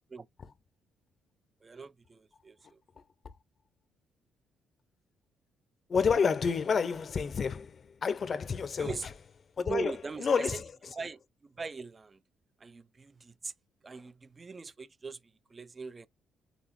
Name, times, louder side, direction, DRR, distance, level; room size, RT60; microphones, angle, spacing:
voice 1, 1.6-2.8 8.8-9.1 9.6-10.6 10.9-12.2 12.6-13.5 13.8-16.1, right 4 dB, 30° right, 0.4 m, -41 dB
voice 2, 5.9-8.9 9.6-9.9 10.2-10.6, left 6 dB, 45° left, 0.5 m, -29 dB
4.0 x 3.4 x 3.0 m
cardioid pair, 90°, 0 cm